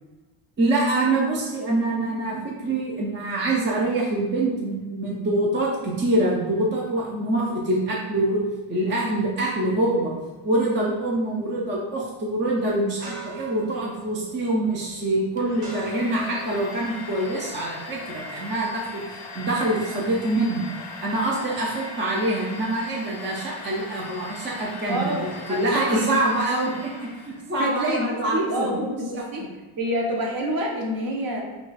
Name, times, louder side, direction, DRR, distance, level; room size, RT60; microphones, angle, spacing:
voice 1, 0.6-8.4 8.7-10.1 10.4-19.0 19.3-20.7 21.0-29.5, right 1 dB, 25° right, -3 dB, 0.3 m, -25 dB
sound 1, 9.0-18.2, right 4 dB, 80° right, 0.9 m, -45 dB
Domestic sounds home sounds, 15.4-27.5, left 3 dB, 50° left, 0.6 m, -39 dB
voice 2, 24.9-26.2 27.6-29.4 29.8-31.4, equal, 45° right, 0 dB, 0.7 m, -27 dB
2.9 x 2.3 x 3.9 m, 1.2 s
cardioid pair, 160°, 49 cm